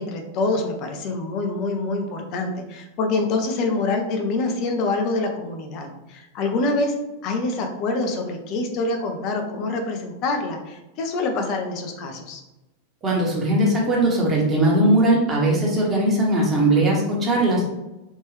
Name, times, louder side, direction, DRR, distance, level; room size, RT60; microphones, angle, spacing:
voice 1, 0.0-7.0 7.2-12.4, left 3 dB, 40° left, 3 dB, 0.7 m, -26 dB
voice 2, 13.0-17.6, right 1 dB, 25° right, -2 dB, 1.2 m, -19 dB
3.6 x 2.6 x 3.2 m, 1.0 s
figure-of-eight pair, 90°, 0 cm